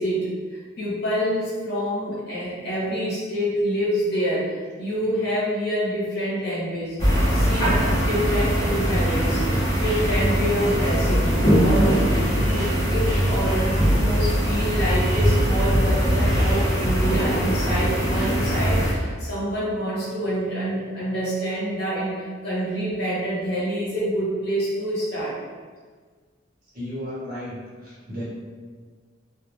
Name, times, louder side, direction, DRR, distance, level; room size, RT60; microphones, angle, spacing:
voice 1, 0.0-11.3 11.6-25.4, equal, 55° left, -8 dB, 1.0 m, -27 dB
sound 1, 7.0-18.9, equal, 20° left, 0.7 m, -21 dB
voice 2, 26.7-27.5 27.8-28.2, equal, 50° right, -9 dB, 1.1 m, -33 dB
2.4 x 2.2 x 3.0 m, 1.5 s
head